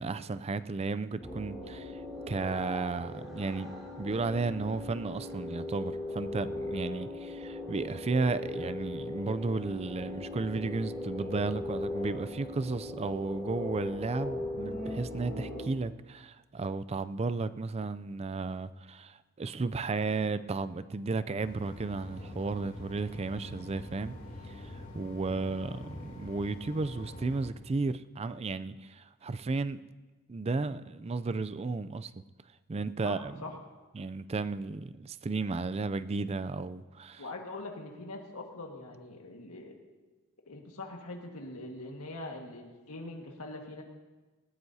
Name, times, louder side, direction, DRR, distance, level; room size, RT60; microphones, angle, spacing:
voice 1, 0.0-3.7 4.0-24.1 24.4-29.8 30.3-32.1 32.7-33.3 33.9-37.3, right 3 dB, 30° right, 14 dB, 0.4 m, -34 dB
sound 1, 1.2-15.6, left 2 dB, ahead, 4.4 m, -39 dB
sound 2, 21.4-27.5, left 1 dB, 40° left, 3.1 m, -45 dB
voice 2, 33.0-33.5 37.2-39.7 40.5-43.8, left 2 dB, 85° left, 1 dB, 1.7 m, -43 dB
19.5 x 18.5 x 2.8 m, 1.2 s
head